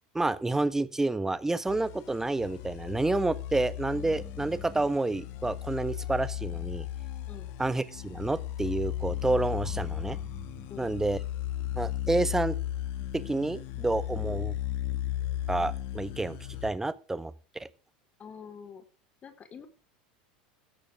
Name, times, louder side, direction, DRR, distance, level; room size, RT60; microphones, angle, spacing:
voice 1, 0.1-6.9 7.6-11.2 11.7-12.6 13.1-14.5 15.5-17.7, right 2 dB, 10° right, 1.5 m, -29 dB
sound 1, 1.7-16.7, left 13 dB, 60° left, 2.7 m, -35 dB
voice 2, 18.2-18.8 19.2-19.7, left 7 dB, 30° left, 4.7 m, -46 dB
16.5 x 13.5 x 3.8 m
hypercardioid pair, 90°, 4 cm